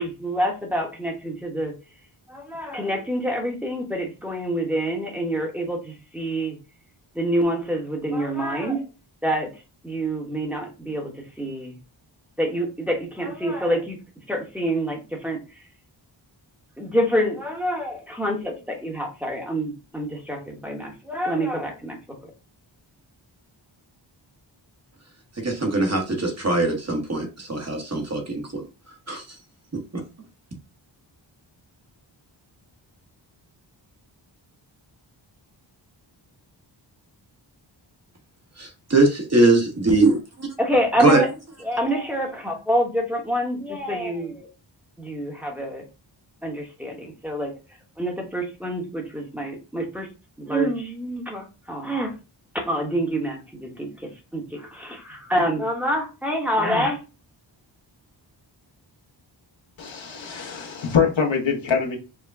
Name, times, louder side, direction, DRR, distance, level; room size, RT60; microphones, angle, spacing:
voice 1, 0.0-1.8 2.3-6.6 7.1-8.8 9.2-9.5 9.8-11.8 12.4-14.0 14.3-15.4 16.8-22.3 40.6-41.3 41.6-44.5 45.0-45.8 46.4-47.5 48.0-50.1 50.4-52.1 52.5-57.0, equal, 5° right, 0 dB, 1.0 m, -27 dB
voice 2, 25.4-28.6 29.1-29.2 29.9-30.0 38.6-40.2 41.0-41.2, right 2 dB, 35° right, 2 dB, 1.1 m, -21 dB
voice 3, 59.8-62.0, left 6 dB, 75° left, 0 dB, 1.3 m, -24 dB
4.7 x 2.2 x 3.4 m, 0.30 s
wide cardioid pair, 105°, 46 cm